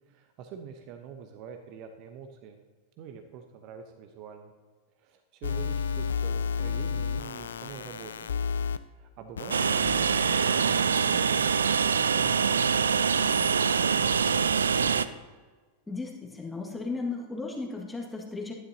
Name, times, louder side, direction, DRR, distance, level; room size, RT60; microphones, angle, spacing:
voice 1, 0.1-2.6 3.0-4.5 5.0-8.3 8.9-13.5 13.8-15.2, right 7 dB, 40° right, 6 dB, 0.9 m, -45 dB
sound 1, 5.4-8.8 9.4-10.7, left 6 dB, 65° left, 0.4 m, -32 dB
Train, 9.5-15.1, right 6 dB, 70° right, 0.3 m, -24 dB
voice 2, 15.9-18.5, left 3 dB, 10° left, -1 dB, 1.8 m, -35 dB
12.5 x 11.0 x 2.8 m, 1.4 s
figure-of-eight pair, 90°, 0 cm